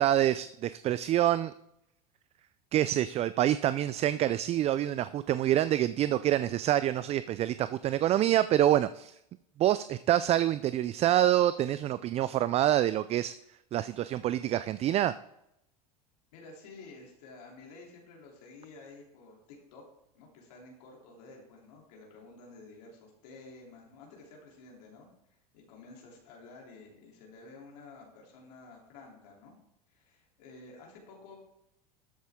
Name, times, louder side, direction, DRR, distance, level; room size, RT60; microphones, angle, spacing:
voice 1, 0.0-1.5 2.7-9.2 9.6-13.3 13.7-15.1, right 12 dB, 30° right, 15 dB, 0.4 m, -26 dB
voice 2, 16.3-19.8 20.1-29.5 29.9-31.4, left 3 dB, 75° left, -1 dB, 3.2 m, -51 dB
12.5 x 8.2 x 3.6 m, 0.82 s
hypercardioid pair, 100°, 20 cm